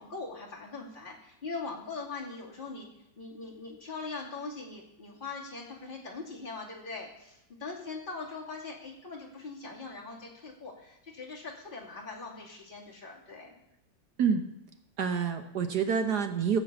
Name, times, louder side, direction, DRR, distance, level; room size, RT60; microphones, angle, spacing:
voice 1, 0.0-2.9 3.2-13.5, left 3 dB, 25° left, -3 dB, 2.9 m, -41 dB
voice 2, 15.0-16.6, right 6 dB, 65° right, 7 dB, 1.4 m, -27 dB
17.5 x 7.7 x 6.8 m, 0.84 s
omnidirectional pair, 2.0 m